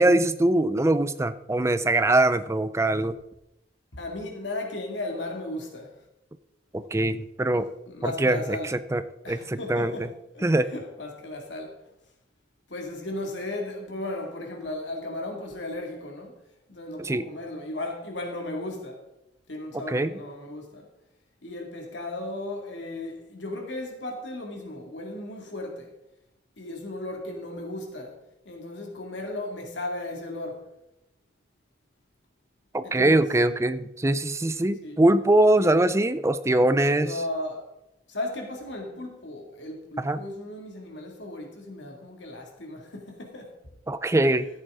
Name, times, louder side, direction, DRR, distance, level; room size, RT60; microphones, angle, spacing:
voice 1, 0.0-3.2 6.7-7.7 8.0-9.0 9.3-9.9 10.4-10.7 17.0-17.3 19.9-20.1 32.7-37.1 40.0-40.2 43.9-44.5, right 1 dB, 15° right, 0.4 m, -22 dB
voice 2, 3.9-6.0 7.5-8.7 9.2-11.8 12.7-16.3 16.7-19.0 19.5-20.9 21.4-25.9 26.6-30.7 32.8-33.3 34.8-35.0 35.6-35.8 36.9-37.7 38.1-43.5, left 2 dB, 75° left, 2.3 m, -36 dB
14.0 x 7.9 x 3.7 m
head